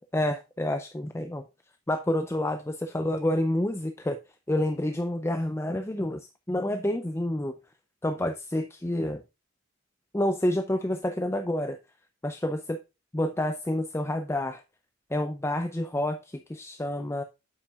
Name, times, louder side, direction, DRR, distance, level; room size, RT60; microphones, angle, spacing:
voice 1, 0.0-1.4 1.9-4.2 4.5-7.6 8.0-9.2 10.1-11.8 12.2-12.8 13.1-14.6 15.1-17.2, left 1 dB, 10° left, 0.5 m, -28 dB
8.7 x 7.3 x 2.4 m
head